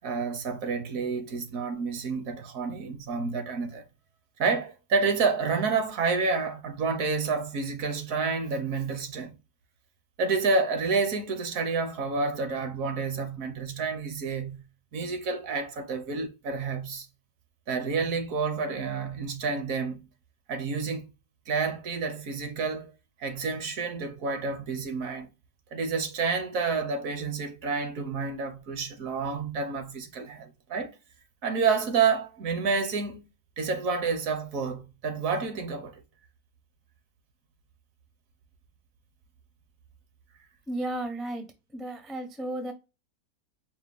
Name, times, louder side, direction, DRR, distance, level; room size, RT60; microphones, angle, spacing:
voice 1, 0.0-3.8 4.4-9.3 10.2-14.6 14.9-17.1 17.7-20.0 20.5-21.0 21.5-22.9 23.2-25.3 25.7-30.9 31.4-33.3 33.6-36.0, right 4 dB, 65° right, 1.1 m, -29 dB
voice 2, 40.7-41.5 41.7-42.7, right 1 dB, ahead, 0.4 m, -33 dB
4.8 x 2.2 x 3.5 m
omnidirectional pair, 1.6 m